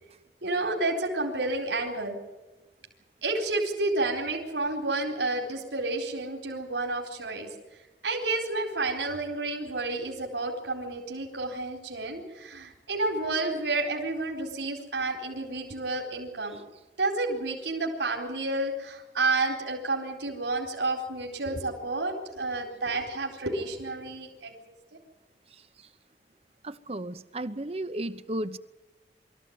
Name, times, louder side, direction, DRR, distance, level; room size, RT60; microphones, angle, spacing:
voice 1, 0.4-2.2 3.2-16.6 17.0-24.5, right 2 dB, 85° right, 4.2 m, -30 dB
voice 2, 25.5-25.9 26.6-28.6, right 1 dB, 35° right, 0.9 m, -35 dB
24.5 x 14.5 x 9.6 m
head